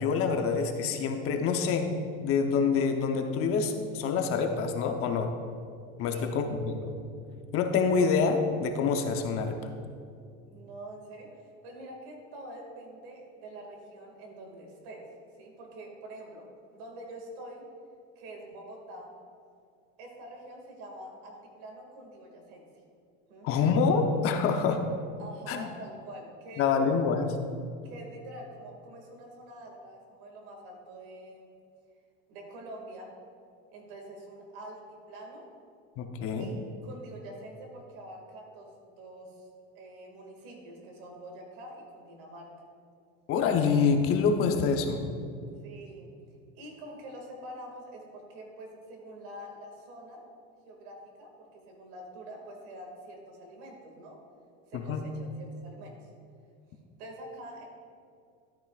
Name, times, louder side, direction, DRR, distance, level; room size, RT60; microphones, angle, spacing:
voice 1, 0.0-5.3 6.0-6.9 7.5-9.6 23.4-24.8 25.5-25.6 26.6-27.4 36.0-36.5 43.3-45.0 54.7-55.0, left 5 dB, 45° left, 5 dB, 0.8 m, -26 dB
voice 2, 6.1-6.5 10.5-11.3 11.6-15.1 15.4-16.5 16.7-17.6 18.2-19.1 20.0-22.7 23.3-23.5 25.2-26.7 27.8-31.5 32.3-33.1 33.7-35.5 36.4-39.5 39.7-42.5 45.6-46.1 46.6-50.2 50.6-54.2 54.7-56.1 57.0-57.6, right 1 dB, 75° right, 1 dB, 2.2 m, -46 dB
13.0 x 9.0 x 2.5 m, 2.4 s
cardioid pair, 145°, 31 cm